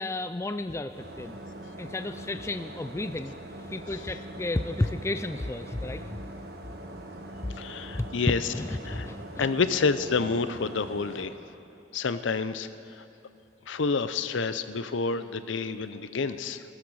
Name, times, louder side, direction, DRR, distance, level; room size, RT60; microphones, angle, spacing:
voice 1, 0.0-1.4 1.8-6.2 7.4-7.5 7.9-9.5, left 2 dB, 15° left, 10 dB, 0.3 m, -32 dB
sound 1, 0.9-11.3, right 1 dB, 55° right, 1.2 m, -42 dB
voice 2, 7.6-8.4 8.8-9.1 9.4-11.3 11.9-12.7 13.0-13.1 13.7-16.6, left 4 dB, 80° left, 12 dB, 0.6 m, -28 dB
21.0 x 13.0 x 4.8 m, 2.6 s
head